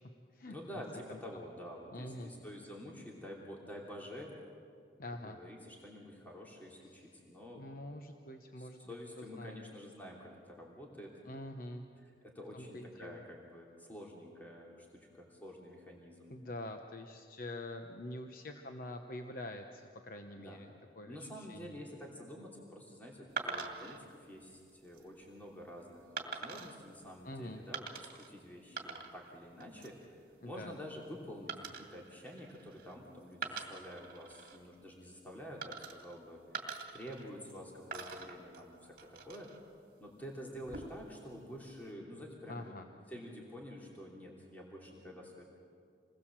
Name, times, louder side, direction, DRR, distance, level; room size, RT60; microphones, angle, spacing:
voice 1, 0.5-4.4 5.2-7.7 8.6-11.2 12.0-16.4 20.4-20.6 21.1-36.4 36.9-38.9 39.2-39.5 40.0-42.7 43.1-45.4, equal, 10° left, -2 dB, 3.0 m, -49 dB
voice 2, 1.9-2.3 5.0-5.4 7.0-7.1 7.6-9.6 11.2-11.9 12.5-13.2 16.3-21.8 27.2-27.6 30.4-30.7 42.5-42.9, left 1 dB, 50° left, 5 dB, 1.0 m, -45 dB
sound 1, 23.4-24.0 24.7-25.0 26.2-26.8 27.7-28.3 28.6-29.3 29.6-30.0 31.5-32.9 33.3-34.6 35.6-36.2 36.5-37.6 37.9-39.6 40.5-41.1, right 4 dB, 50° right, 2.3 m, -44 dB
28.0 x 20.0 x 7.5 m, 2.3 s
head